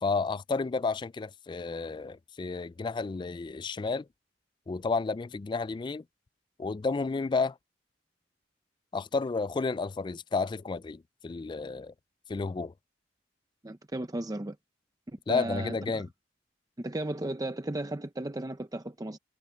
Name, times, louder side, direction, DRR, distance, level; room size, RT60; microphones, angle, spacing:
voice 1, 0.0-4.1 4.7-6.0 6.6-7.6 8.9-11.9 12.3-12.7 15.3-16.1, left 4 dB, 25° left, 0.3 m, -31 dB
voice 2, 13.6-14.6 15.1-16.0 16.8-19.2, right 1 dB, 20° right, 0.6 m, -35 dB
head